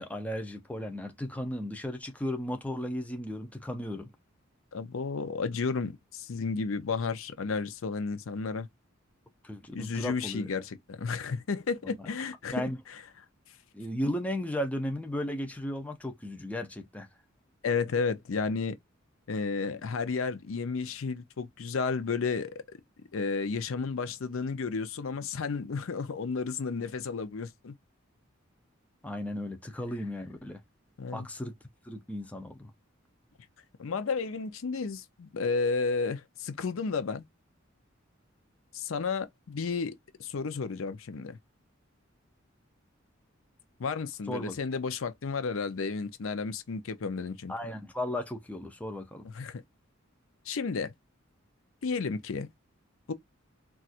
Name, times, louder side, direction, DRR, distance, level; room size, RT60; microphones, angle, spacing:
voice 1, 0.0-4.1 9.4-10.5 12.5-12.8 13.7-17.1 29.0-30.6 31.1-31.5 31.9-32.7 44.3-44.6 47.5-49.2, left 1 dB, 5° left, 0.5 m, -35 dB
voice 2, 4.7-8.7 9.7-13.0 17.6-18.8 19.3-22.6 23.1-27.7 31.0-31.3 33.8-37.2 38.7-41.4 43.8-47.5 49.2-49.6 50.5-50.9 51.8-52.5 53.1-53.2, left 4 dB, 75° left, 0.5 m, -32 dB
4.1 x 2.4 x 2.4 m
head